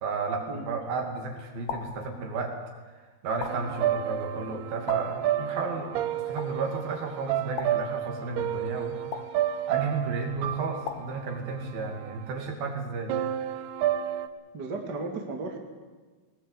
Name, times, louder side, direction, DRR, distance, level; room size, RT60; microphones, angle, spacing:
voice 1, 0.0-2.6 3.2-9.0 9.7-13.1, right 4 dB, 60° right, 3 dB, 4.3 m, -33 dB
sound 1, 1.7-2.1 3.4-3.8 4.9-5.2 6.4-6.7 7.6-8.0 9.1-9.5 10.9-11.3, left 7 dB, 65° left, 3.2 m, -38 dB
sound 2, 3.5-12.3 13.1-14.3, right 11 dB, 80° right, 2.8 m, -31 dB
voice 2, 14.5-15.6, right 3 dB, 30° right, 2 dB, 2.2 m, -34 dB
21.0 x 19.5 x 8.4 m, 1.4 s
omnidirectional pair, 4.9 m